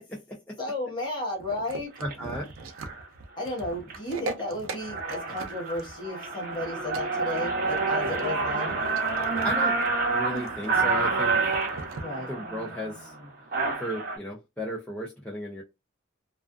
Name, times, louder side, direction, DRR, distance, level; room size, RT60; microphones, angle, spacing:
voice 1, 0.6-1.9 3.4-8.8 12.0-12.3, left 1 dB, 25° left, 1.1 m, -33 dB
sound 1, 1.4-12.0, right 3 dB, 85° right, 0.5 m, -41 dB
sound 2, 1.9-2.1 2.8-3.0 3.5-4.0 4.4-4.5 4.7-14.2, right 4 dB, 45° right, 1.0 m, -28 dB
voice 2, 2.0-2.5 9.4-9.8 10.1-11.6 12.3-13.1 13.8-15.6, equal, 5° left, 0.5 m, -34 dB
2.4 x 2.3 x 2.3 m
head